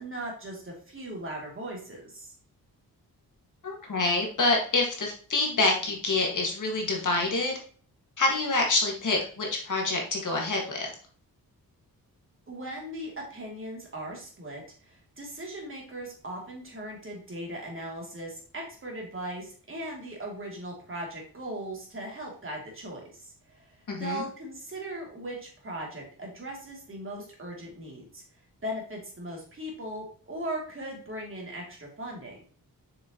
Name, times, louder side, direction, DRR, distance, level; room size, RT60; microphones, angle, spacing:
voice 1, 0.0-2.3 12.5-28.2 28.6-32.4, right 1 dB, 35° right, -1 dB, 2.8 m, -38 dB
voice 2, 3.6-7.6 8.2-10.9 23.9-24.2, left 2 dB, 55° left, 1 dB, 1.9 m, -27 dB
6.9 x 6.2 x 3.0 m, 0.43 s
wide cardioid pair, 110°, 37 cm